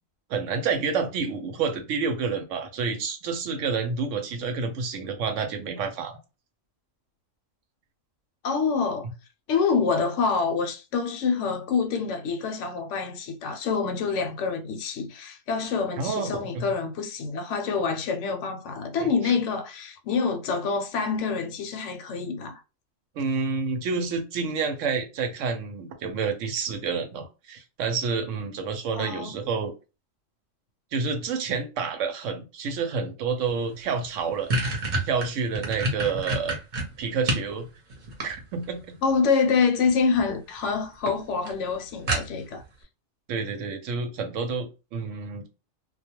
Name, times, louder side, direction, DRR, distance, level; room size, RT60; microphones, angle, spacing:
voice 1, 0.3-6.2 16.0-16.6 19.0-19.3 23.2-29.7 30.9-34.5 35.0-36.5 37.0-37.7 38.2-39.0 43.3-45.5, right 5 dB, 75° right, 0.9 m, -29 dB
voice 2, 8.4-9.1 9.5-22.6 28.9-29.3 39.0-42.6, left 5 dB, 70° left, 0.9 m, -26 dB
sound 1, 33.6-33.7 34.0-37.5 37.9-38.8 39.9-40.3 40.6-40.7 41.1-41.2 41.5-41.6 42.1-42.6, right 2 dB, 45° right, 0.8 m, -28 dB
2.3 x 2.2 x 2.9 m
omnidirectional pair, 1.4 m